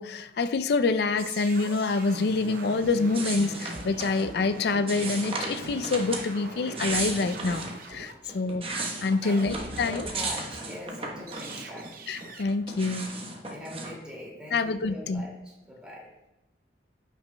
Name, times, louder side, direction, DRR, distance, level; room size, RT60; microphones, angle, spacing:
voice 1, 0.0-8.7 9.0-10.1 12.1-13.2 14.5-15.2, left 3 dB, 60° left, 12 dB, 0.4 m, -27 dB
sound 1, 1.2-10.4 10.7-12.4, right 2 dB, 50° right, 0.7 m, -42 dB
sound 2, 3.1-4.3 4.9-6.3 6.6-7.8 8.3-11.9 12.2-13.9, right 3 dB, 30° right, 1.0 m, -35 dB
voice 2, 8.2-8.6 9.2-9.5 9.8-12.1 13.5-16.1, equal, 5° right, -4 dB, 2.2 m, -42 dB
14.0 x 5.9 x 2.2 m, 0.94 s
head